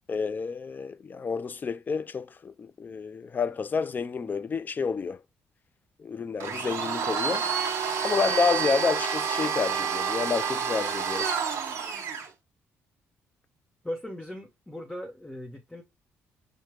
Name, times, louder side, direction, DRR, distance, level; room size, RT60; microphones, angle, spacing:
voice 1, 0.1-5.2 6.0-7.5 8.0-11.3, left 5 dB, 35° left, 0.4 m, -29 dB
Domestic sounds home sounds, 6.4-12.3, right 6 dB, 60° right, 1.2 m, -29 dB
voice 2, 13.8-15.8, left 1 dB, 10° left, 0.8 m, -38 dB
5.7 x 2.1 x 3.3 m
cardioid pair, 80°, 5 cm